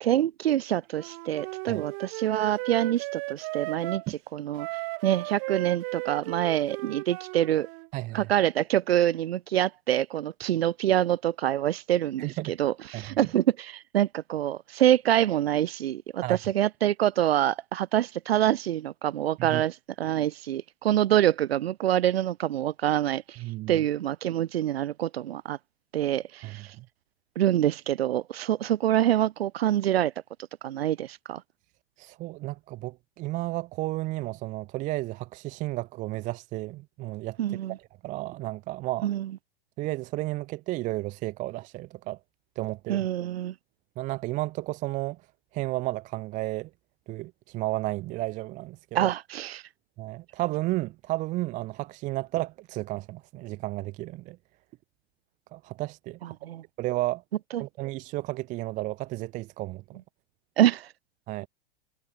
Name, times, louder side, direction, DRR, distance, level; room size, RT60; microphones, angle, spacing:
voice 1, 0.0-4.0 4.3-4.7 5.0-7.7 8.1-23.4 23.7-25.6 25.9-26.6 27.4-30.1 30.6-31.4 37.4-37.8 39.0-39.3 42.9-43.5 48.9-49.6 56.2-56.6 57.5-57.6 60.6-60.9, right 12 dB, 85° right, 1.1 m, -26 dB
Wind instrument woodwind instrument, 0.9-4.1 4.6-7.9, right 32 dB, 50° right, 2.4 m, -36 dB
voice 2, 7.9-8.3 12.2-12.6 12.9-13.2 16.2-16.4 19.4-19.6 23.4-23.8 26.4-26.8 32.0-37.4 37.7-37.8 38.0-39.1 39.8-42.2 42.6-43.1 44.0-45.2 45.5-46.7 47.1-49.1 50.0-54.4 55.5-56.2 56.8-57.2 57.6-60.0 61.3-61.5, right 18 dB, 25° right, 0.4 m, -32 dB
hypercardioid pair, 125°, 30 cm